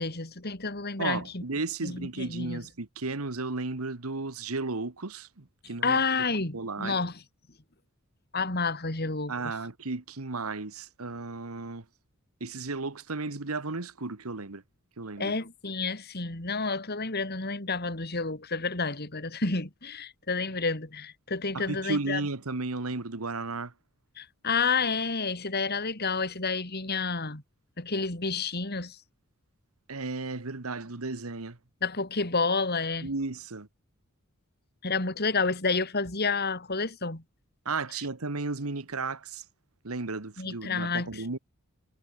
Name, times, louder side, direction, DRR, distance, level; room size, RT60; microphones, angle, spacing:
voice 1, 0.0-1.4 1.8-2.6 5.8-7.1 8.3-9.3 15.2-22.2 24.2-27.4 27.8-29.0 31.8-33.1 34.8-37.2 40.4-41.2, left 4 dB, 50° left, 3.3 m, -30 dB
voice 2, 1.0-6.0 6.5-7.0 9.3-11.8 12.4-14.6 15.0-15.3 21.5-23.7 29.9-31.6 33.0-33.7 37.6-39.4 39.8-41.4, right 3 dB, 90° right, 1.5 m, -34 dB
head